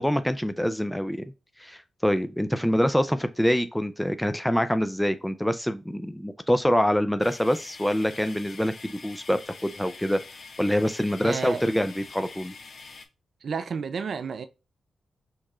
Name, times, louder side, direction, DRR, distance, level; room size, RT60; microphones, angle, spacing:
voice 1, 0.0-1.3 1.6-10.2 10.6-12.5, equal, 5° left, 0.4 m, -25 dB
sound 1, 7.2-13.1, left 4 dB, 60° left, 0.6 m, -45 dB
voice 2, 11.2-11.6 13.4-14.5, right 5 dB, 65° right, 0.3 m, -31 dB
4.5 x 2.9 x 2.4 m
cardioid pair, 65°, 0 cm